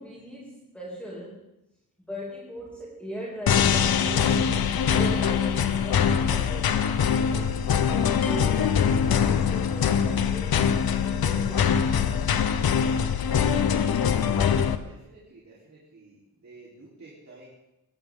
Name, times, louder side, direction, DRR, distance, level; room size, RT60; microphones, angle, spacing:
voice 1, 0.0-1.5 2.0-7.7 8.2-12.6, equal, 5° left, -6 dB, 2.9 m, -40 dB
sound 1, 3.5-14.8, left 7 dB, 75° left, 1.0 m, -23 dB
voice 2, 14.3-17.5, right 3 dB, 45° right, -5 dB, 4.1 m, -50 dB
21.5 x 16.5 x 3.8 m, 0.92 s
wide cardioid pair, 165°, 37 cm